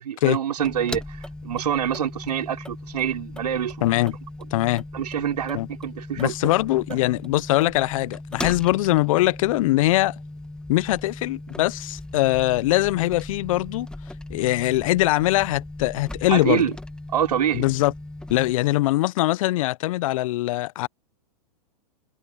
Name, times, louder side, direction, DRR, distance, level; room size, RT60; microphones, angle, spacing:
voice 1, 0.0-3.9 4.9-6.3 6.9-7.0 16.3-16.7 17.1-17.7, right 9 dB, 80° right, 4.7 m, -26 dB
sound 1, 0.6-18.5, left 1 dB, 5° left, 2.0 m, -38 dB
voice 2, 3.8-4.1 4.5-4.8 5.5-5.7 6.2-10.2 10.7-13.9 14.3-16.7 17.5-17.9 18.3-20.9, left 17 dB, 55° left, 0.7 m, -22 dB
hypercardioid pair, 115°, 20 cm